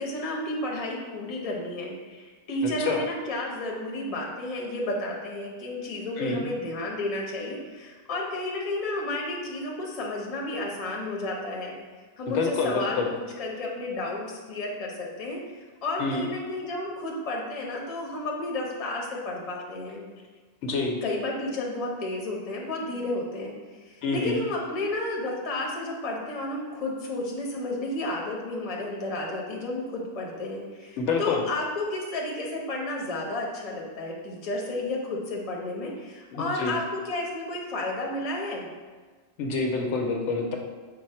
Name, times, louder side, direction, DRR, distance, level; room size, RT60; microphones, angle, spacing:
voice 1, 0.0-11.8 12.2-15.4 15.8-20.0 21.0-23.5 23.8-38.7, left 2 dB, 35° left, -2 dB, 0.7 m, -32 dB
voice 2, 2.6-3.0 6.2-6.4 12.3-13.1 16.0-16.3 20.6-21.0 24.0-24.4 31.0-31.4 36.3-36.7 39.4-40.6, left 4 dB, 80° left, 1 dB, 0.9 m, -27 dB
5.1 x 2.1 x 4.2 m, 1.4 s
omnidirectional pair, 1.2 m